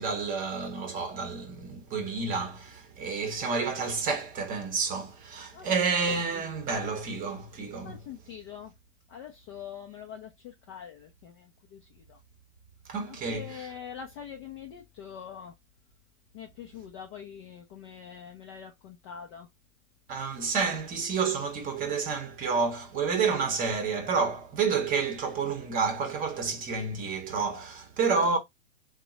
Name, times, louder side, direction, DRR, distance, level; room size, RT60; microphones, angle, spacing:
voice 1, 0.0-8.0 12.9-13.5 20.1-28.4, right 5 dB, 20° right, 0.8 m, -29 dB
voice 2, 7.8-8.7 9.1-12.2 13.1-15.6 16.3-19.5, left 8 dB, 25° left, 0.3 m, -44 dB
3.7 x 2.1 x 2.9 m
hypercardioid pair, 125°, 38 cm